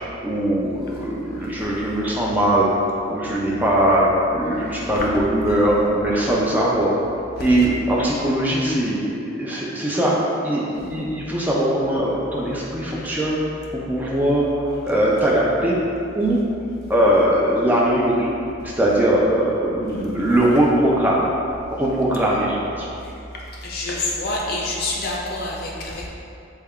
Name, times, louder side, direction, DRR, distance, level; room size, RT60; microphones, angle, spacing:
voice 1, 0.2-2.7 3.1-7.0 7.4-10.2 10.4-13.4 13.7-15.8 16.1-16.4 16.9-18.3 18.6-21.3 21.7-22.9, right 1 dB, 10° right, -5 dB, 0.3 m, -20 dB
voice 2, 23.6-26.1, left 2 dB, 50° left, -3 dB, 0.5 m, -27 dB
3.3 x 2.2 x 3.5 m, 2.6 s
head